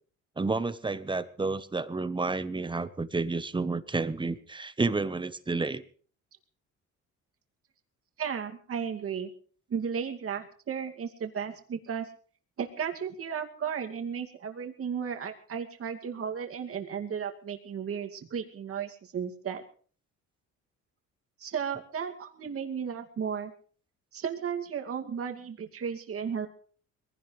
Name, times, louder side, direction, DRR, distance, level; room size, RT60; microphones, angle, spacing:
voice 1, 0.4-5.8, right 3 dB, 15° right, 13 dB, 1.0 m, -30 dB
voice 2, 8.2-9.3 9.7-12.1 12.6-19.6 21.4-23.5 24.1-26.5, right 7 dB, 50° right, 5 dB, 2.4 m, -34 dB
22.5 x 16.5 x 3.3 m, 0.44 s
cardioid pair, 105°, 30 cm